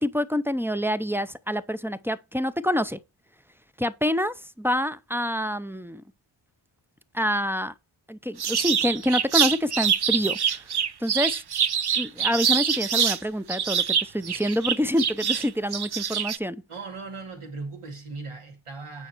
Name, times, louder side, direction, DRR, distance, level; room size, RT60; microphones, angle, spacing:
voice 1, 0.0-3.0 3.8-6.0 7.1-7.7 8.1-10.6 11.0-11.4 12.0-16.6, equal, 5° right, 0.5 m, -27 dB
sound 1, 8.4-13.2 13.5-16.4, right 8 dB, 50° right, 0.7 m, -25 dB
voice 2, 16.7-19.1, right 3 dB, 85° right, 2.6 m, -38 dB
9.2 x 5.3 x 4.4 m
wide cardioid pair, 75°, 50 cm